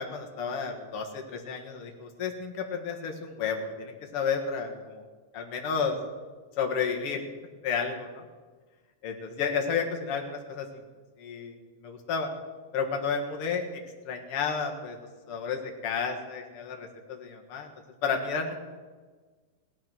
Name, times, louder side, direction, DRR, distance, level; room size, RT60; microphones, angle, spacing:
voice 1, 0.0-5.0 5.3-6.0 6.6-7.2 7.6-8.2 9.0-10.7 11.2-11.6 11.8-12.3 12.7-13.6 14.1-15.0 15.3-17.7 18.0-18.5, left 6 dB, 50° left, 2 dB, 2.2 m, -31 dB
17.5 x 10.5 x 6.3 m, 1.4 s
omnidirectional pair, 3.8 m